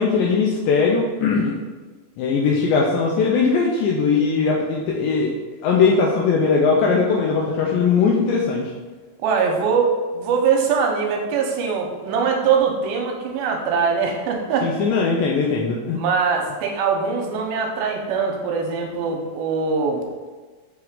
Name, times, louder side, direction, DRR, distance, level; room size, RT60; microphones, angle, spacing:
voice 1, 0.0-1.5 2.2-5.3 5.6-8.7 14.6-16.0, left 5 dB, 80° left, -2 dB, 2.1 m, -19 dB
voice 2, 9.2-14.7 15.9-20.1, right 5 dB, 85° right, 1 dB, 2.6 m, -22 dB
7.5 x 3.6 x 3.6 m, 1.4 s
omnidirectional pair, 4.3 m